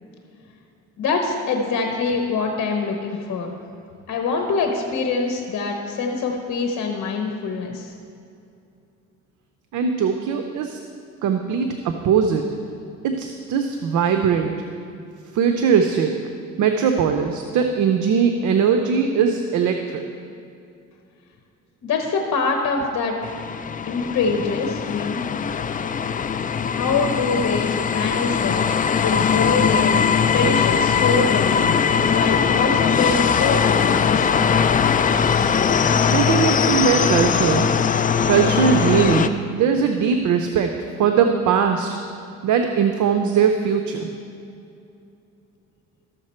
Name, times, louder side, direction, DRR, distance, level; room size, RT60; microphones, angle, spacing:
voice 1, 1.0-3.5 4.1-7.9 21.8-23.1 23.8-25.2 26.7-28.5 29.0-29.9 30.3-31.6 32.1-34.2, left 4 dB, 65° left, 3 dB, 1.0 m, -24 dB
voice 2, 9.7-10.8 11.2-12.4 13.0-14.5 15.3-16.1 16.6-20.0 36.0-37.7 38.3-40.7 41.0-42.0 42.4-44.1, right 6 dB, 75° right, 5 dB, 0.7 m, -20 dB
sound 1, 23.2-39.3, left 6 dB, 30° left, 0.4 m, -20 dB
13.0 x 6.6 x 4.3 m, 2.6 s
cardioid pair, 90°, 30 cm